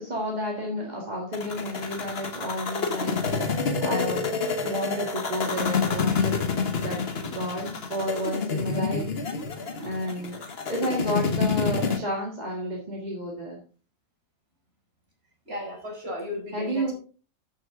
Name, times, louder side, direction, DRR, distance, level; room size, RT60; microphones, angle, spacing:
voice 1, 0.0-4.3 4.6-9.2 9.8-10.4 10.7-13.6 16.5-16.9, equal, 35° right, -2 dB, 2.0 m, -31 dB
sound 1, 1.3-12.0, left 5 dB, 50° left, 1.3 m, -28 dB
voice 2, 15.5-16.9, left 1 dB, 50° right, -2 dB, 4.8 m, -35 dB
12.5 x 6.5 x 3.7 m, 0.38 s
omnidirectional pair, 1.4 m